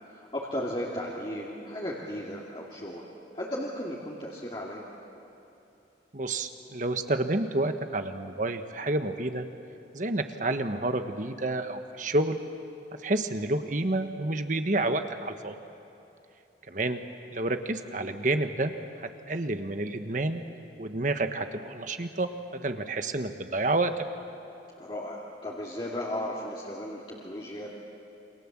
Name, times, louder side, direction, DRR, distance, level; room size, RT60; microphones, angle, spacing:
voice 1, 0.1-3.1 3.3-4.8 24.8-27.7, left 1 dB, 30° left, -5 dB, 2.6 m, -35 dB
voice 2, 6.1-9.5 9.9-12.4 13.0-15.5 16.7-17.0 17.3-18.7 19.0-20.4 20.8-24.0, right 2 dB, 45° right, 7 dB, 1.4 m, -29 dB
29.0 x 26.0 x 7.5 m, 2.9 s
head